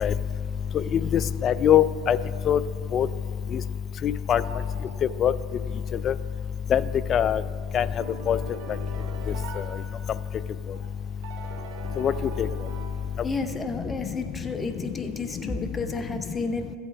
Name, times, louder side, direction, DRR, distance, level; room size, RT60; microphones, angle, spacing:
voice 1, 0.9-2.2 2.5-2.6 2.9-3.1 4.0-4.4 5.2-5.3 6.0-6.1 6.7-6.8 7.1-7.4 7.7-7.9 8.3-8.4 12.0-12.1 12.4-12.5, left 9 dB, 40° left, 16 dB, 0.3 m, -21 dB
Bird, 1.9-2.0 2.2-2.3 2.6-3.8 4.0-5.9 6.7-6.8 7.5-7.6 7.8-7.9 8.5-9.0 9.9-10.0 10.4-10.5 10.7-13.0 13.3-13.7 14.0-15.3 15.7-15.9, right 2 dB, 85° right, 1.9 m, -49 dB
sound 1, 8.0-10.6 11.2-13.7, right 5 dB, 70° right, 0.9 m, -42 dB
voice 2, 13.2-16.8, left 3 dB, 20° left, 7 dB, 0.8 m, -31 dB
14.0 x 8.1 x 3.4 m, 2.1 s
hypercardioid pair, 100°, 0 cm